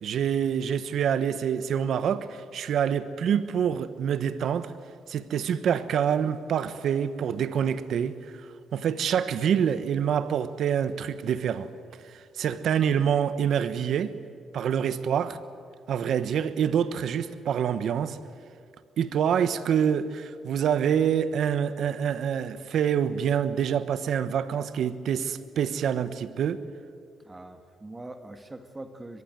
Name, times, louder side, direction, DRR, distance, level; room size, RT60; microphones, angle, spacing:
voice 1, 0.0-4.7 5.1-8.2 8.7-11.7 12.0-14.1 14.5-15.4 15.9-18.2 19.0-26.6, right 8 dB, 70° right, 1.2 m, -26 dB
voice 2, 27.2-29.2, right 2 dB, 20° right, 1.8 m, -42 dB
23.0 x 22.0 x 9.2 m
cardioid pair, 90°, 0 cm